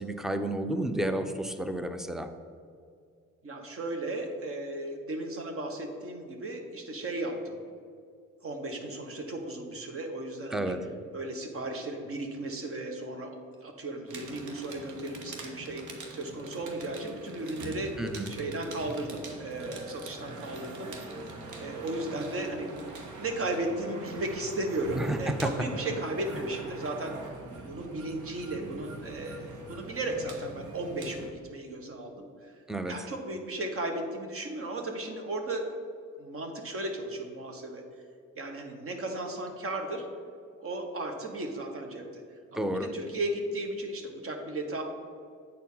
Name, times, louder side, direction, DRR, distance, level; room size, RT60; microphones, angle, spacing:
voice 1, 0.0-2.3 10.5-10.8 18.0-18.3 24.9-25.5 32.7-33.0 42.5-42.9, right 1 dB, ahead, 8 dB, 0.5 m, -31 dB
voice 2, 3.4-7.6 8.4-10.8 11.1-17.9 18.3-20.9 21.5-22.8 23.2-27.2 27.6-32.5 32.9-35.6 36.2-37.8 38.3-40.1 40.6-42.2 42.5-44.8, right 2 dB, 50° right, 4 dB, 1.3 m, -35 dB
sound 1, 14.1-31.3, right 3 dB, 80° right, 1.2 m, -43 dB
8.3 x 4.4 x 5.5 m, 2.3 s
cardioid pair, 90°, 30 cm